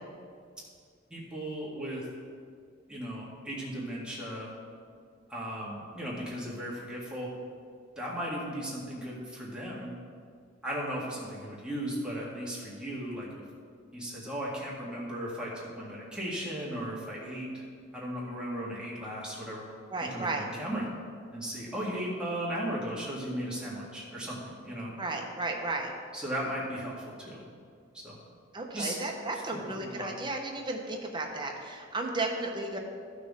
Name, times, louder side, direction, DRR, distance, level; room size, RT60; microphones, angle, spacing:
voice 1, 1.1-2.1 2.9-4.5 5.3-7.3 8.0-9.9 10.6-13.4 13.9-17.6 17.9-19.6 20.0-20.9 21.3-24.9 26.1-27.4 28.0-28.2 28.7-29.0 29.5-30.1, equal, 5° right, -6 dB, 1.9 m, -36 dB
voice 2, 19.9-20.5 25.0-25.9 28.5-32.8, right 2 dB, 25° right, 1 dB, 1.0 m, -34 dB
14.5 x 6.2 x 3.7 m, 2.1 s
head